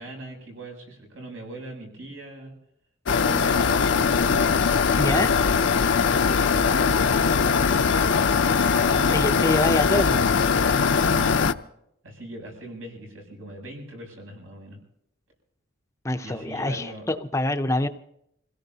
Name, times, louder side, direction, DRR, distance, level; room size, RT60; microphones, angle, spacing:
voice 1, 0.0-2.5 3.2-4.5 6.2-9.9 11.0-11.3 12.0-14.8 16.2-17.1, right 1 dB, 90° right, 0 dB, 7.8 m, -40 dB
sound 1, 3.1-11.5, left 5 dB, 70° left, 0.6 m, -21 dB
voice 2, 5.0-5.3 9.1-10.4 16.0-17.9, left 1 dB, 15° left, 8 dB, 0.5 m, -25 dB
26.5 x 17.5 x 2.8 m, 0.75 s
head